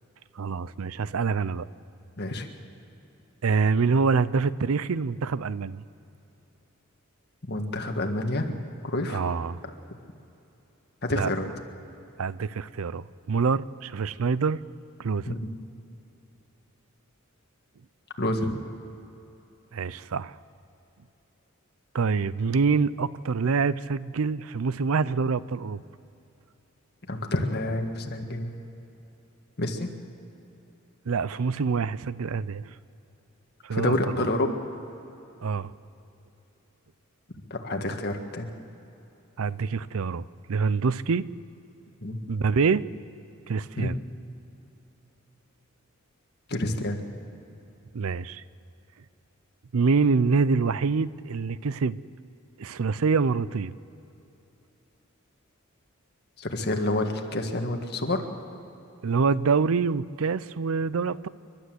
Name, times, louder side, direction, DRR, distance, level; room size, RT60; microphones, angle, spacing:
voice 1, 0.4-1.7 3.4-5.8 9.1-9.6 11.1-11.3 12.2-14.6 15.0-15.4 19.7-20.3 21.9-25.8 31.1-32.8 33.6-34.3 35.4-35.7 39.4-41.3 42.3-42.8 43.5-44.0 47.9-48.4 49.7-52.0 52.6-53.7 59.0-61.3, right 5 dB, 75° right, 18 dB, 0.5 m, -26 dB
voice 2, 7.5-8.6 8.8-9.2 11.0-11.5 15.3-15.4 18.2-18.6 27.1-28.5 29.6-29.9 33.7-34.6 37.5-38.5 42.0-42.2 43.8-43.9 46.5-47.0 56.4-58.2, left 1 dB, 50° left, 4 dB, 1.8 m, -28 dB
29.0 x 12.0 x 7.9 m, 2.9 s
head